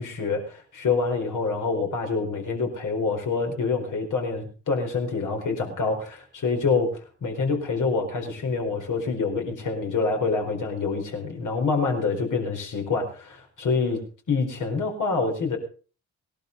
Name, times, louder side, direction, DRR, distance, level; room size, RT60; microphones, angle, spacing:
voice 1, 0.0-6.9 7.2-14.0 14.3-15.6, left 4 dB, 60° left, 3 dB, 4.5 m, -26 dB
20.0 x 11.5 x 4.0 m, 0.37 s
hypercardioid pair, 45°, 35 cm